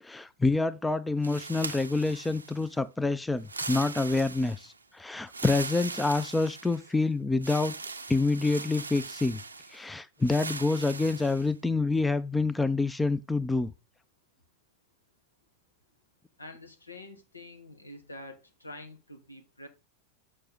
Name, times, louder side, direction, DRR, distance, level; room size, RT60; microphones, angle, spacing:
voice 1, 0.0-7.7 8.1-9.4 9.7-13.7, left 3 dB, 10° left, 0.5 m, -27 dB
sound 1, 1.2-2.7 3.4-4.7 5.3-6.9 7.4-9.8 10.2-11.5, right 4 dB, 80° right, 0.5 m, -40 dB
voice 2, 16.4-19.7, left 2 dB, 85° left, 1.2 m, -46 dB
6.6 x 6.1 x 3.9 m
figure-of-eight pair, 90°, 0 cm